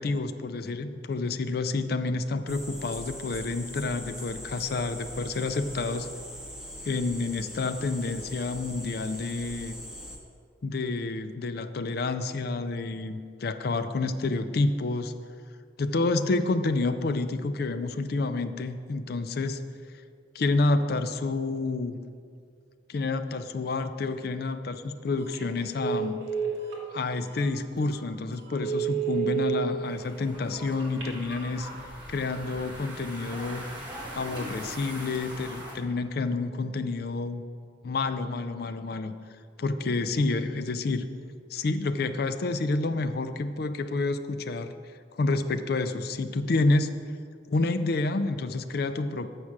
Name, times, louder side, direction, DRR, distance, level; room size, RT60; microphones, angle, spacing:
voice 1, 0.0-6.1 6.8-9.8 10.6-15.1 15.8-19.6 20.3-22.0 22.9-26.2 26.9-31.7 32.1-33.7 34.1-37.4 37.8-39.2 39.6-41.1 41.5-44.7 45.2-46.9 47.5-49.3, left 3 dB, 50° left, 10 dB, 0.4 m, -29 dB
sound 1, 2.5-10.2, equal, 5° right, 0.7 m, -41 dB
Telephone, 25.2-25.4 25.8-26.8 27.4-27.5 27.9-28.0 28.5-29.6 30.8-31.4, right 9 dB, 65° right, 1.8 m, -30 dB
sound 2, 29.8-35.7, right 1 dB, 25° right, 1.4 m, -41 dB
7.5 x 4.9 x 7.2 m, 2.2 s
head